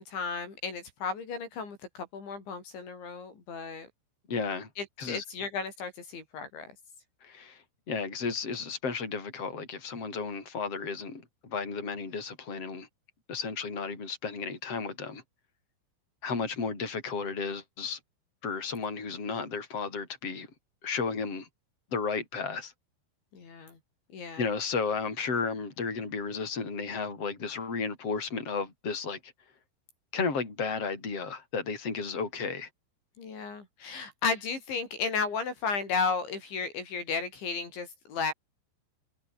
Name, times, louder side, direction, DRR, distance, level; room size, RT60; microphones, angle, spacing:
voice 1, 0.0-3.9 4.8-6.7 23.3-23.8 24.1-24.5 33.2-38.3, left 5 dB, 65° left, 8.0 m, -34 dB
voice 2, 4.3-4.7 5.0-5.2 7.2-12.9 13.3-15.2 16.2-18.0 18.4-20.5 20.8-21.5 21.9-22.7 24.4-29.3 30.1-32.7, left 5 dB, 30° left, 7.1 m, -33 dB
omnidirectional pair, 5.8 m